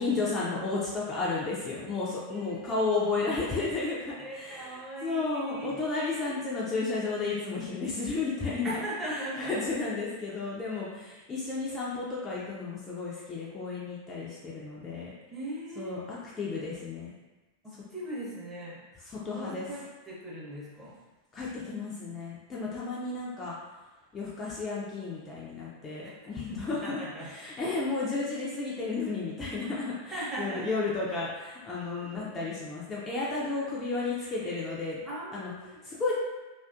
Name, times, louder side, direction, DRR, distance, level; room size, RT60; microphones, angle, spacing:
voice 1, 0.0-8.7 9.0-15.1 15.8-17.1 19.1-19.7 21.3-23.6 24.1-27.0 27.3-35.0 35.3-35.5 35.8-36.1, left 3 dB, 20° left, -6 dB, 0.4 m, -33 dB
voice 2, 2.3-3.4 4.2-5.9 6.1-6.4 8.6-9.8 15.3-15.9 17.6-18.8 19.2-21.0 26.3-27.3 30.1-30.7 32.0-32.4 33.4-33.7 35.0-35.8, right 1 dB, 10° right, -7 dB, 0.8 m, -40 dB
2.4 x 2.3 x 2.3 m, 1.1 s
figure-of-eight pair, 90°, 0 cm